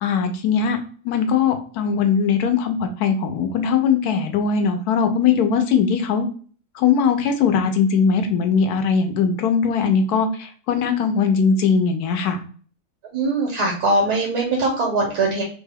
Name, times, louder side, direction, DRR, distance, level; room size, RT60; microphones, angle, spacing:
voice 1, 0.0-0.8 1.0-6.3 6.7-12.4, left 6 dB, 80° left, 6 dB, 1.1 m, -20 dB
voice 2, 13.1-15.4, right 2 dB, 90° right, -2 dB, 1.5 m, -21 dB
3.3 x 2.2 x 3.3 m, 0.42 s
omnidirectional pair, 1.6 m